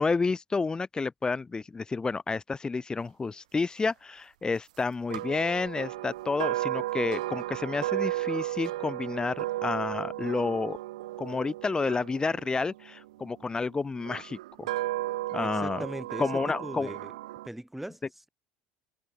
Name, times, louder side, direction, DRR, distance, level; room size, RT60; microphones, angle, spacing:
voice 1, 0.0-10.8 11.2-14.7 15.3-15.8 16.2-16.9, left 4 dB, 20° left, 5.1 m, -30 dB
sound 1, 5.1-13.3 14.0-17.5, right 16 dB, 85° right, 0.9 m, -34 dB
voice 2, 15.4-17.1 17.4-18.0, right 1 dB, 5° right, 5.9 m, -39 dB
hypercardioid pair, 80°, 4 cm